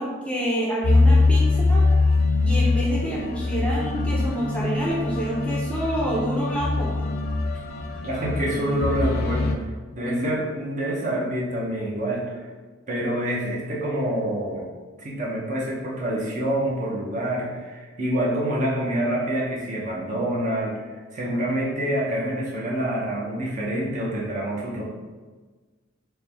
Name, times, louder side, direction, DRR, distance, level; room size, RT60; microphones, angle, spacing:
voice 1, 0.0-1.8 2.4-6.9 10.0-10.3, equal, 5° left, -5 dB, 0.6 m, -27 dB
sound 1, 0.8-9.5, left 3 dB, 55° left, 0.4 m, -22 dB
voice 2, 8.0-9.7 9.9-12.4 12.9-14.6 15.0-20.8 21.1-24.8, right 1 dB, 40° right, -4 dB, 0.8 m, -27 dB
4.5 x 2.2 x 3.4 m, 1.4 s
head